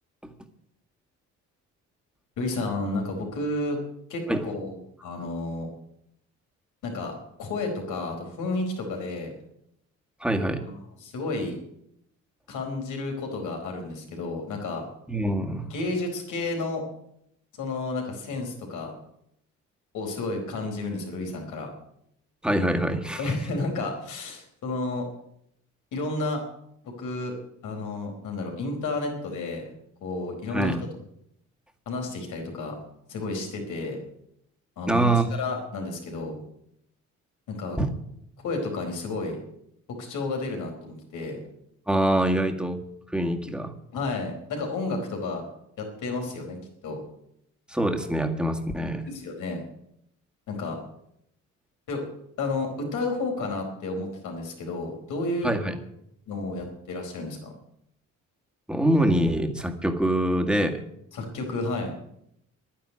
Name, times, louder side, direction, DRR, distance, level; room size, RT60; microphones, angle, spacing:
voice 1, 2.4-3.8 4.1-4.7 5.0-5.7 6.8-9.3 10.6-11.6 12.5-14.8 15.7-16.8 17.6-18.9 19.9-21.7 23.2-25.1 25.9-26.4 26.8-27.3 27.6-29.7 30.0-30.8 31.9-32.8 33.1-34.0 34.8-36.4 37.5-37.8 38.4-39.4 39.9-41.4 43.9-45.4 45.8-47.0 49.0-49.6 50.5-50.8 51.9-52.1 52.4-55.5 56.3-57.5 61.1-61.9, left 2 dB, 85° left, 2 dB, 4.5 m, -31 dB
voice 2, 10.2-10.6 15.1-15.7 22.4-23.3 30.5-30.8 34.9-35.3 37.8-37.9 41.9-42.8 43.1-43.7 47.7-49.1 55.4-55.8 58.7-60.8, right 1 dB, 5° right, 4 dB, 2.0 m, -24 dB
11.5 x 10.0 x 9.8 m, 0.75 s
cardioid pair, 90°, 30 cm